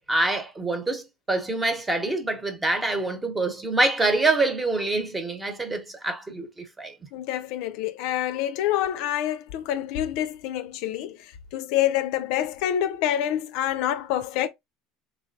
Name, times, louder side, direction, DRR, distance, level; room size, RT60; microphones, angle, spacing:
voice 1, 0.1-6.5 6.8-6.9, right 2 dB, 15° right, 0.9 m, -25 dB
voice 2, 7.1-14.5, left 11 dB, 70° left, 0.4 m, -27 dB
3.3 x 3.2 x 2.6 m
hypercardioid pair, 80°, 0 cm